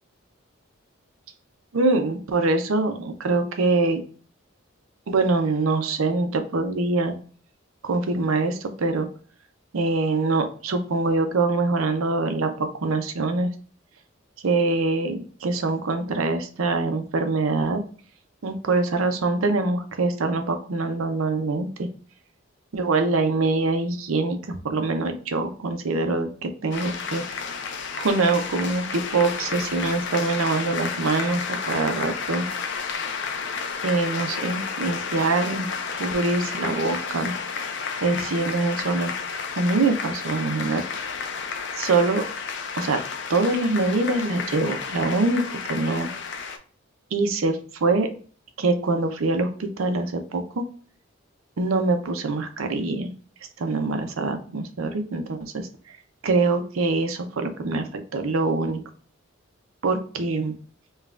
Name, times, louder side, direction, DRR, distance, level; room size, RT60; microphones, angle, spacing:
voice 1, 1.7-4.0 5.1-7.2 7.8-9.1 9.7-13.5 14.4-17.8 18.4-21.9 22.7-27.2 28.0-32.5 33.8-35.7 36.0-37.3 38.0-39.1 39.6-40.8 41.8-42.2 42.7-43.0 43.3-45.4 45.7-46.1 47.1-48.1 48.6-50.6 51.6-53.1 53.6-56.0 56.2-58.8 59.8-60.5, right 3 dB, 85° right, 7 dB, 0.6 m, -24 dB
sound 1, 26.7-46.6, left 5 dB, 55° left, 0.5 m, -31 dB
5.4 x 2.3 x 2.4 m, 0.43 s
head